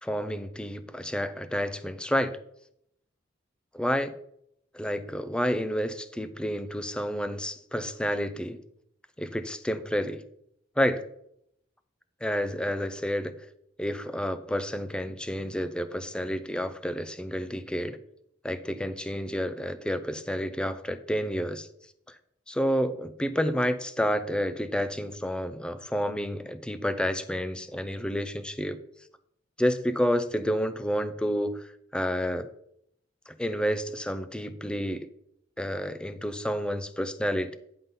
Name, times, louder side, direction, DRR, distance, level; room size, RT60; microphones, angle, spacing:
voice 1, 0.0-2.4 3.7-4.1 4.7-8.6 9.2-10.2 10.8-11.0 12.2-13.4 13.8-18.0 18.4-21.7 22.5-28.8 29.6-31.7 31.9-32.5 33.3-35.1 35.6-37.6, equal, 5° left, 11 dB, 0.5 m, -29 dB
9.6 x 3.8 x 5.5 m, 0.72 s
head